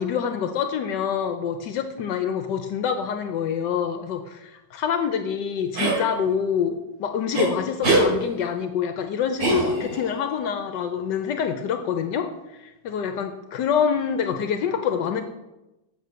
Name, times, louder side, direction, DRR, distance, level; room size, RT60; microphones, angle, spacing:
voice 1, 0.0-15.2, left 7 dB, 80° left, 7 dB, 1.3 m, -26 dB
sound 1, 5.8-6.0 7.3-7.5 7.8-8.1 9.4-10.1, right 1 dB, 55° right, 3.0 m, -21 dB
7.4 x 6.6 x 6.7 m, 0.98 s
omnidirectional pair, 2.0 m